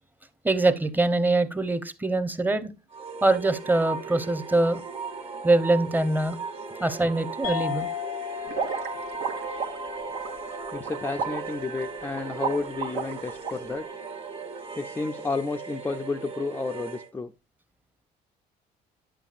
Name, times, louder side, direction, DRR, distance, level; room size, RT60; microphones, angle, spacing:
voice 1, 0.4-2.7 3.2-4.8 5.4-6.4 6.8-7.9, right 2 dB, 10° right, 0.7 m, -23 dB
sound 1, 2.9-17.1, right 5 dB, 35° right, 1.4 m, -37 dB
sound 2, 7.4-12.3, left 13 dB, 90° left, 0.6 m, -37 dB
sound 3, 8.5-13.5, right 6 dB, 80° right, 1.1 m, -33 dB
voice 2, 10.7-13.9 14.7-17.3, left 4 dB, 10° left, 0.4 m, -31 dB
8.7 x 7.1 x 2.5 m
cardioid pair, 110°, 17 cm